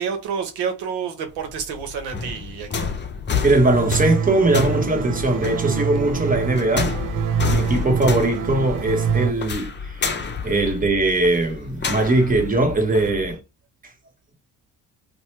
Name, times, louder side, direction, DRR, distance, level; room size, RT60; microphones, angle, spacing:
voice 1, 0.0-2.9, right 7 dB, 80° right, 0.9 m, -29 dB
sound 1, 1.3-13.3, left 5 dB, 30° left, 0.7 m, -30 dB
voice 2, 3.4-7.0 7.5-10.1 10.4-13.4, right 2 dB, 20° right, 1.2 m, -20 dB
sound 2, 3.7-9.3, right 9 dB, 55° right, 0.6 m, -25 dB
2.7 x 2.2 x 3.2 m
supercardioid pair, 60°, 39 cm